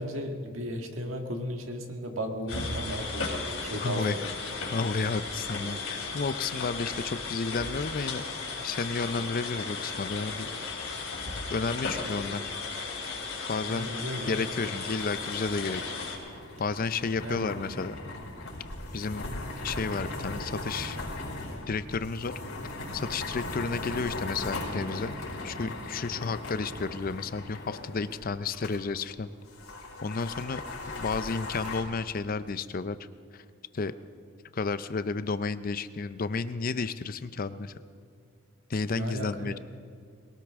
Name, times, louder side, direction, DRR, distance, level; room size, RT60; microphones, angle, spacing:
voice 1, 0.0-4.3 13.7-14.5 16.5-16.6 17.2-17.6 38.9-39.6, equal, 70° right, 3 dB, 1.8 m, -35 dB
sound 1, 2.5-16.2, left 4 dB, 65° left, 3.4 m, -35 dB
voice 2, 3.7-4.1 4.7-8.2 8.6-10.5 11.5-12.4 13.5-13.9 14.3-15.8 16.6-17.9 18.9-19.2 19.6-21.0 21.7-22.3 22.9-25.2 25.4-29.3 30.0-30.6 31.0-33.0 33.3-33.4 33.7-33.9 34.5-37.7 38.7-39.6, left 4 dB, 40° left, 13 dB, 0.5 m, -32 dB
sound 2, 13.6-28.8 29.0-29.1 29.5-31.8, left 2 dB, 85° left, 4.8 m, -39 dB
22.0 x 18.0 x 3.6 m, 2.2 s
head